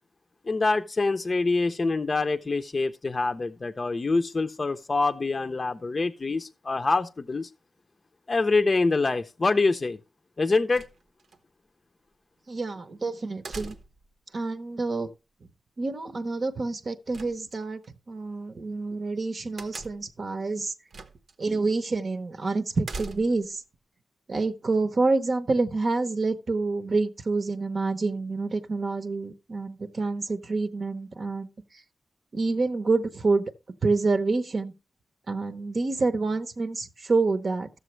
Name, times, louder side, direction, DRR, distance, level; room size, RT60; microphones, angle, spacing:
voice 1, 0.4-7.5 8.3-10.0 10.4-10.8, left 3 dB, 40° left, 0.5 m, -25 dB
sound 1, 10.7-11.4 13.4-14.1 17.1-17.9 19.6-20.2 20.9-21.3 21.7-21.8 22.8-23.5, right 3 dB, 80° right, 0.9 m, -41 dB
voice 2, 12.5-13.8 14.3-15.1 15.8-17.8 18.1-20.7 21.4-23.6 24.3-31.8 32.3-33.5 33.8-34.7 35.3-37.7, right 3 dB, 55° right, 0.8 m, -27 dB
13.5 x 6.9 x 3.1 m
wide cardioid pair, 110°, 0 cm